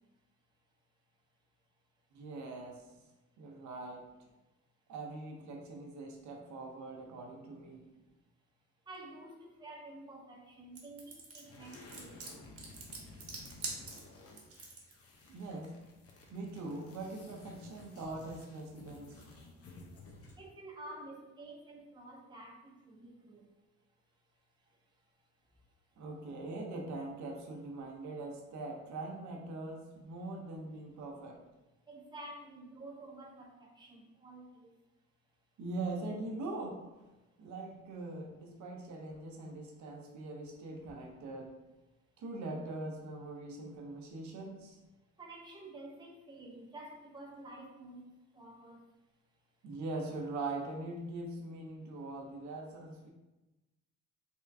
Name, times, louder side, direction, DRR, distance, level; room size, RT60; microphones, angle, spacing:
voice 1, 2.1-2.8 3.4-4.1 4.9-7.9 15.3-15.7 16.3-19.1 26.0-31.4 35.6-37.0 37.4-41.5 42.2-44.8 49.6-53.1, right 2 dB, 70° right, 1 dB, 0.7 m, -42 dB
voice 2, 8.9-12.4 20.4-22.5 22.9-23.5 31.9-34.6 40.8-40.9 45.2-48.0 48.3-48.8, right 2 dB, 15° right, -1 dB, 0.7 m, -50 dB
sound 1, 10.8-14.9, right 3 dB, 50° right, 1.1 m, -44 dB
sound 2, 11.4-20.5, left 2 dB, 50° left, 0.7 m, -54 dB
3.5 x 3.2 x 2.6 m, 1.0 s
cardioid pair, 90°, 30 cm